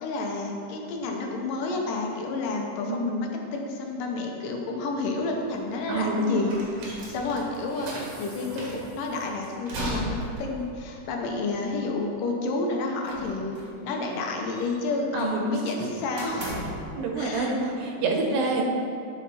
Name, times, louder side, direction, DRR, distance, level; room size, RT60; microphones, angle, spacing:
voice 1, 0.0-6.6 6.9-13.6 13.8-16.6 17.2-17.5, left 3 dB, 80° left, 1 dB, 2.5 m, -30 dB
voice 2, 2.8-3.2 5.9-6.6 15.1-15.5 16.9-18.6, right 2 dB, 90° right, 1 dB, 2.7 m, -27 dB
sound 1, 5.2-12.0, right 1 dB, 70° right, 3.3 m, -37 dB
sound 2, 13.0-13.8 14.1-15.0 16.2-16.9, right 1 dB, 55° right, 2.5 m, -38 dB
11.0 x 5.6 x 4.2 m, 2.5 s
omnidirectional pair, 3.9 m